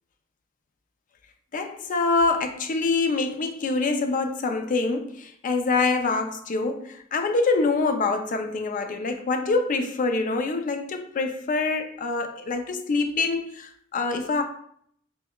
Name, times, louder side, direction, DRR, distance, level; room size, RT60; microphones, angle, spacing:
voice 1, 1.5-14.4, left 3 dB, 40° left, 0.4 m, -25 dB
5.5 x 2.1 x 2.2 m
head